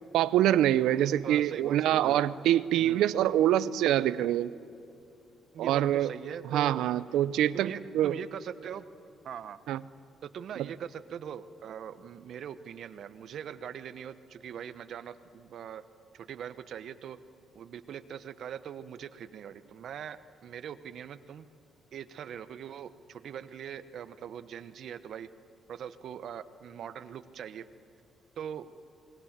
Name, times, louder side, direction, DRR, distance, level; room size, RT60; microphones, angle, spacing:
voice 1, 0.1-4.5 5.6-6.1 6.4-8.1 9.7-9.8 10.6-10.7, right 12 dB, 85° right, 16 dB, 0.7 m, -25 dB
voice 2, 1.2-2.2 2.8-3.1 5.5-6.9 7.5-8.9 9.2-9.6 10.2-15.8 16.1-17.2 17.5-21.5 21.9-25.3 25.7-27.7 28.4-28.7, right 8 dB, 65° right, 12 dB, 1.1 m, -41 dB
29.0 x 21.5 x 7.5 m, 2.7 s
cardioid pair, 90°, 0 cm